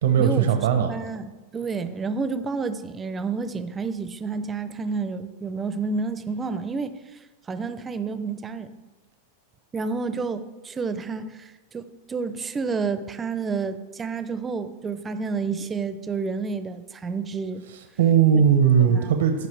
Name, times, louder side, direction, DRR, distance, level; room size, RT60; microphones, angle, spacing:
voice 1, 0.0-0.9 17.7-19.5, right 8 dB, 80° right, 6 dB, 0.8 m, -19 dB
voice 2, 0.9-7.0 7.5-8.7 9.7-17.6 18.3-18.4 18.9-19.0, right 4 dB, 15° right, 11 dB, 0.5 m, -30 dB
14.0 x 5.4 x 3.3 m, 1.2 s
supercardioid pair, 135°, 0 cm